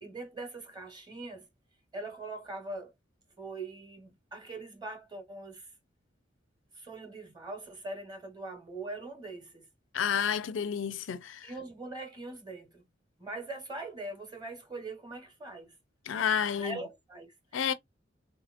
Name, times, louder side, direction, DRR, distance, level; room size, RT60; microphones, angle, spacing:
voice 1, 0.0-1.5 1.9-2.9 3.4-5.7 6.7-9.7 11.4-12.8 13.2-15.7 16.6-17.3, right 2 dB, 20° right, 1.0 m, -42 dB
voice 2, 9.9-11.5 16.1-16.8 17.5-17.7, left 7 dB, 85° left, 0.5 m, -30 dB
3.7 x 2.8 x 2.4 m
head